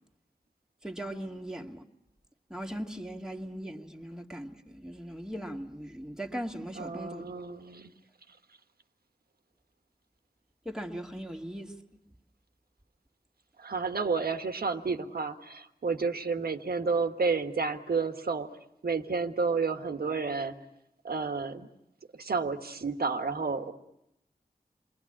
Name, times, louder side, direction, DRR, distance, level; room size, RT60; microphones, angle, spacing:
voice 1, 0.8-1.8 2.5-7.2 10.7-11.7, equal, 5° right, 1.9 m, -39 dB
voice 2, 6.7-7.9 13.6-18.5 18.8-20.5 21.0-21.7 22.1-23.7, right 4 dB, 80° right, 1.5 m, -31 dB
28.5 x 21.5 x 8.7 m
wide cardioid pair, 70°, 16 cm